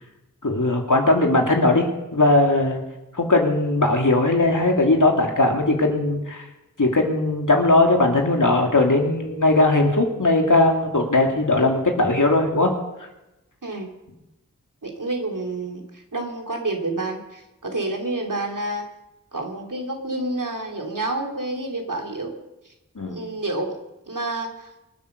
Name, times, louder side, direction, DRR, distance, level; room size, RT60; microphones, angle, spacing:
voice 1, 0.4-2.8 3.1-6.4 6.8-12.7 23.0-23.2, left 2 dB, 75° left, 2 dB, 2.8 m, -19 dB
voice 2, 13.6-13.9 14.8-15.8 16.1-18.9 19.3-22.4 23.1-23.8 24.1-24.7, right 2 dB, 80° right, 2 dB, 2.9 m, -29 dB
25.0 x 8.4 x 6.7 m, 0.96 s
wide cardioid pair, 40°, 31 cm